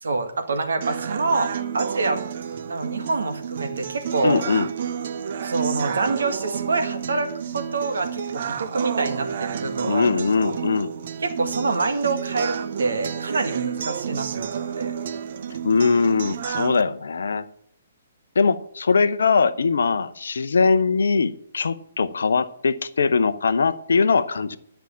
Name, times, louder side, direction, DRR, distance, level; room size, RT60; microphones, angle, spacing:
voice 1, 0.0-2.2 2.7-4.4 5.4-10.1 11.2-14.9, right 3 dB, 60° right, 7 dB, 1.8 m, -26 dB
sound 1, 0.8-16.8, right 8 dB, 45° right, 0.8 m, -30 dB
voice 2, 4.2-4.7 9.8-10.9 15.6-17.5 18.3-24.6, left 4 dB, 60° left, 13 dB, 0.7 m, -21 dB
11.0 x 5.7 x 8.7 m, 0.67 s
figure-of-eight pair, 125°, 0 cm